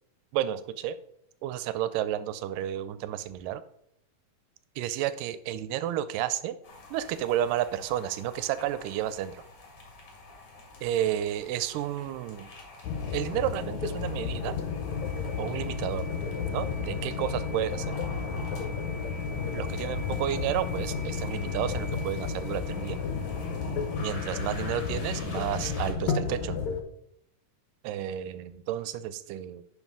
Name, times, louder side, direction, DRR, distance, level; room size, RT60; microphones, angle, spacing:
voice 1, 0.3-1.0 1.4-3.6 4.8-6.6 6.9-9.4 10.8-12.5 13.1-14.6 15.4-16.1 16.5-17.9 19.5-23.0 24.0-26.6 27.8-29.6, right 11 dB, 80° right, 14 dB, 2.1 m, -31 dB
sound 1, 6.6-25.9, left 1 dB, 45° left, 2.4 m, -45 dB
sound 2, 12.8-26.8, left 5 dB, 65° left, 2.0 m, -32 dB
10.5 x 4.9 x 3.6 m, 0.71 s
omnidirectional pair, 4.0 m